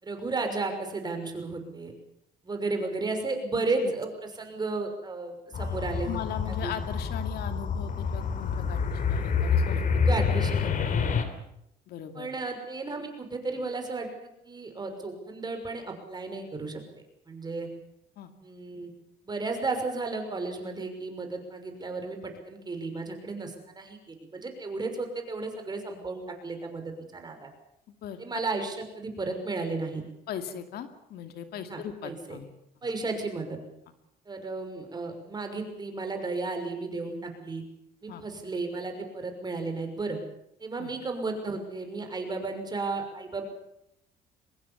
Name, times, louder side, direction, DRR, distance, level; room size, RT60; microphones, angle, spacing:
voice 1, 0.0-1.9 2.4-4.1 4.4-6.2 6.6-6.7 10.1-10.9 12.1-17.7 18.4-18.9 19.2-22.2 22.4-27.5 28.2-30.0 31.7-32.4 32.8-33.6 34.3-37.6 38.0-40.2 40.6-43.4, right 3 dB, 25° right, 5 dB, 6.1 m, -33 dB
voice 2, 3.5-3.9 6.0-11.1 11.9-12.3 18.2-18.3 27.9-28.2 30.3-32.5 38.1-38.2 40.8-40.9, left 9 dB, 70° left, 8 dB, 2.5 m, -39 dB
sound 1, 5.5-11.2, left 5 dB, 50° left, 3.4 m, -27 dB
24.0 x 20.5 x 7.3 m, 0.78 s
cardioid pair, 110°, 17 cm